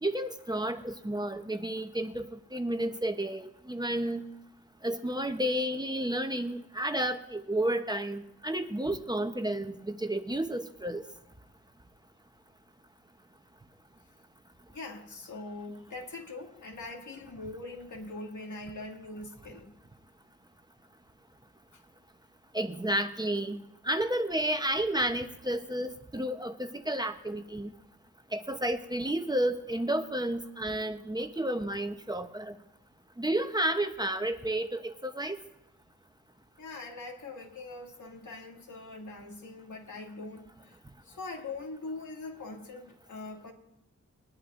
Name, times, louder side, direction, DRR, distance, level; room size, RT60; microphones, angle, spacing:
voice 1, 0.0-4.2 4.8-11.0 22.5-23.6 23.9-27.7 28.3-32.5 33.2-35.4, right 1 dB, 15° right, 7 dB, 0.8 m, -31 dB
voice 2, 14.7-19.7 36.6-40.8 41.0-43.5, left 3 dB, 80° left, 1 dB, 2.2 m, -42 dB
21.5 x 11.0 x 2.5 m, 0.85 s
wide cardioid pair, 100°, 30 cm